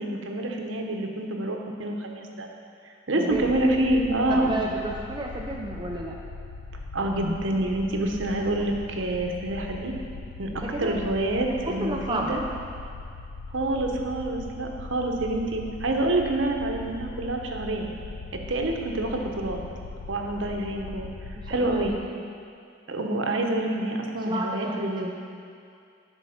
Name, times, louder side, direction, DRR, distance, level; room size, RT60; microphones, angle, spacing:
voice 1, 0.0-2.5 3.1-4.6 6.9-9.9 10.4-12.4 13.5-17.9 18.3-19.6 20.1-21.1 21.5-21.9 22.9-25.1, right 1 dB, 70° right, 2 dB, 0.9 m, -27 dB
voice 2, 3.2-3.5 4.3-6.2 10.7-11.0 11.5-12.4 21.4-22.2 24.3-25.1, right 1 dB, 20° right, -1 dB, 0.5 m, -32 dB
sound 1, 3.3-22.0, left 3 dB, 75° left, 0.5 m, -40 dB
11.0 x 4.6 x 5.6 m, 2.4 s
head